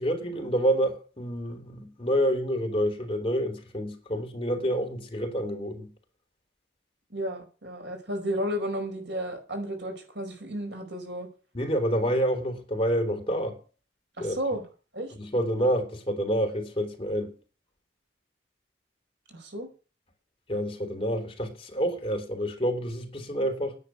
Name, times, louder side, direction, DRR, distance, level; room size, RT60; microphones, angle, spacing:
voice 1, 0.0-5.9 11.5-13.6 14.2-14.4 15.2-17.3 20.5-23.8, equal, 30° left, 3.4 m, -28 dB
voice 2, 7.1-11.3 14.2-14.6 14.9-15.1 19.3-19.7, equal, 80° right, 5.0 m, -33 dB
10.0 x 8.1 x 9.3 m
head